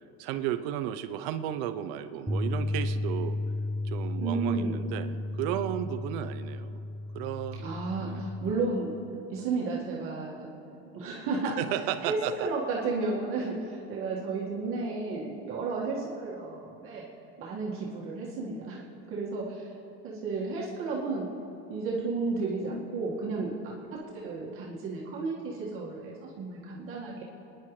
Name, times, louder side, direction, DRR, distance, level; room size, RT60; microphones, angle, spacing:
voice 1, 0.2-3.4 3.8-6.8 7.1-7.6 8.0-8.3 11.4-12.5, right 11 dB, 70° right, 11 dB, 0.7 m, -34 dB
Bass guitar, 2.3-8.5, left 2 dB, ahead, 0.3 m, -33 dB
voice 2, 4.2-4.8 7.6-9.0 9.3-10.5 10.9-11.6 12.0-17.1 17.4-18.8 19.1-19.7 20.0-21.3 21.7-27.2, right 3 dB, 45° right, -4 dB, 1.9 m, -33 dB
25.5 x 10.5 x 3.2 m, 3.0 s
supercardioid pair, 140°, 29 cm